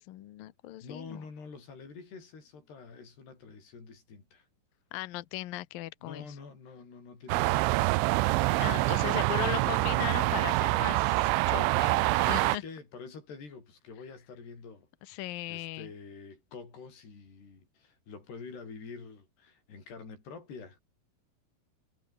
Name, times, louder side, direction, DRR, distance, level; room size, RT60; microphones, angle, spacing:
voice 1, 0.0-1.2 4.9-6.3 8.6-12.6 15.0-15.9, left 17 dB, 75° left, 2.1 m, -38 dB
voice 2, 0.8-4.5 6.0-8.0 8.4-9.0 11.7-15.2 15.5-20.8, left 5 dB, 55° left, 9.7 m, -47 dB
sound 1, 7.3-12.6, right 20 dB, 85° right, 3.0 m, -26 dB
omnidirectional pair, 5.7 m